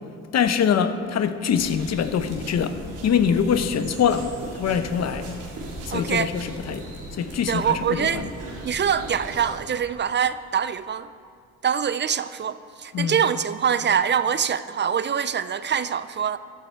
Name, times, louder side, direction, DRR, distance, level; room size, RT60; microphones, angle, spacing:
voice 1, 0.3-5.3 5.8-6.9 7.1-8.3 12.9-13.3, left 7 dB, 60° left, 0.9 m, -24 dB
sound 1, 1.5-9.5, right 2 dB, 85° right, 3.2 m, -38 dB
voice 2, 5.9-6.3 7.5-8.3 8.6-11.1 11.6-16.4, right 8 dB, 35° right, 0.4 m, -24 dB
15.5 x 12.0 x 4.6 m
cardioid pair, 90°, 30 cm